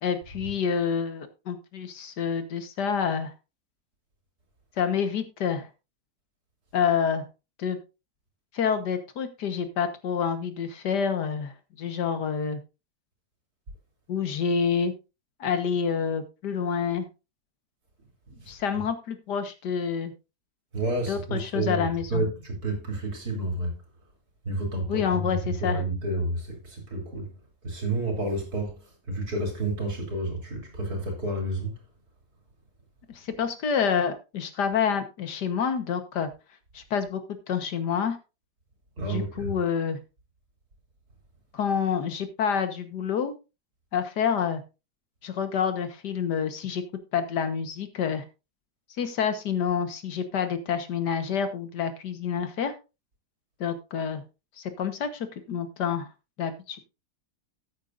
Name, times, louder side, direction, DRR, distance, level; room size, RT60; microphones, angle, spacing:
voice 1, 0.0-3.3 4.8-5.7 6.7-7.2 7.6-7.8 8.5-12.6 14.1-14.9 15.4-17.1 18.5-20.1 21.1-22.2 24.9-25.8 33.1-36.3 36.7-37.2 37.5-38.2 39.0-40.0 41.5-43.3 43.9-44.6 45.2-46.8 47.1-48.2 49.0-52.7 53.6-54.2 54.6-56.1 56.4-56.8, left 7 dB, 85° left, 1.9 m, -28 dB
voice 2, 20.7-23.7 24.5-27.3 27.6-28.8 29.1-31.7 39.0-39.5, right 2 dB, 65° right, 3.7 m, -30 dB
13.5 x 9.1 x 2.5 m
omnidirectional pair, 1.7 m